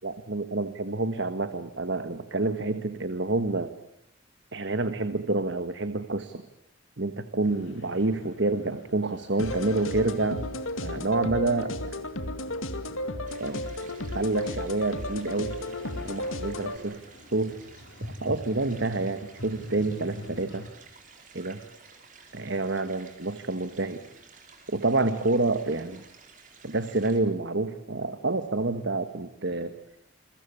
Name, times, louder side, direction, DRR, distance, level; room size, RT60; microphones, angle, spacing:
voice 1, 0.0-3.7 4.5-6.4 7.0-10.5 10.8-11.9 13.4-13.7 14.1-15.6 15.8-17.0 17.3-17.5 18.0-20.7 21.3-21.6 22.3-24.0 24.7-26.0 26.6-29.7, right 2 dB, 60° right, 10 dB, 1.4 m, -28 dB
sound 1, 7.4-20.7, equal, 65° left, 5.0 m, -46 dB
sound 2, 9.4-16.8, left 1 dB, 85° left, 2.3 m, -33 dB
sound 3, 13.3-27.2, right 5 dB, 40° right, 4.7 m, -53 dB
29.0 x 22.5 x 8.5 m, 0.73 s
head